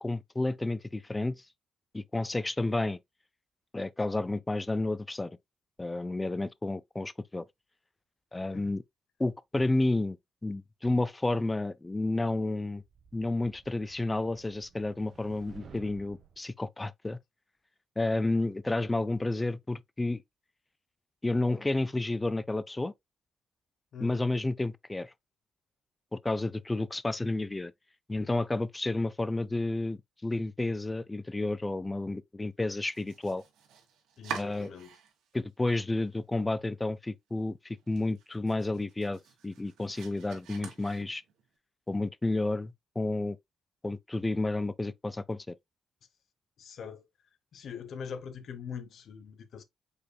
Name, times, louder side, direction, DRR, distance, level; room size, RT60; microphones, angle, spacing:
voice 1, 0.0-1.4 1.9-3.0 3.7-5.4 5.8-7.5 8.3-8.8 9.2-10.2 10.4-12.8 13.1-17.2 18.0-20.2 21.2-22.9 24.0-25.1 26.1-27.7 28.1-33.4 34.3-34.7 35.3-41.2 41.9-43.4 43.8-45.6, left 2 dB, 15° left, 0.4 m, -31 dB
sound 1, 12.8-16.4, right 7 dB, 55° right, 1.0 m, -54 dB
voice 2, 23.9-24.3 34.2-34.9 46.6-47.0 47.5-49.6, left 6 dB, 60° left, 0.8 m, -42 dB
Domestic sounds home sounds, 32.8-35.3 35.7-36.4 36.8-36.9 37.3-37.4 37.8-41.5, right 7 dB, 85° right, 1.5 m, -46 dB
5.4 x 4.1 x 2.2 m
cardioid pair, 90°, 0 cm